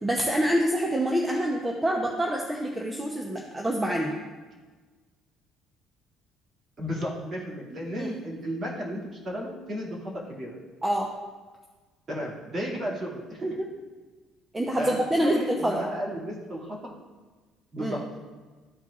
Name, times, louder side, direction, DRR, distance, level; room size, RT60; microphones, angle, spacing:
voice 1, 0.0-4.1 8.0-8.1 10.8-11.1 14.5-15.8 17.8-17.9, equal, 10° right, 0 dB, 0.7 m, -26 dB
voice 2, 6.8-10.5 12.1-13.7 14.7-16.8 17.7-18.0, equal, 35° right, -5 dB, 2.3 m, -33 dB
13.5 x 4.4 x 2.4 m, 1.4 s
cardioid pair, 140°, 0 cm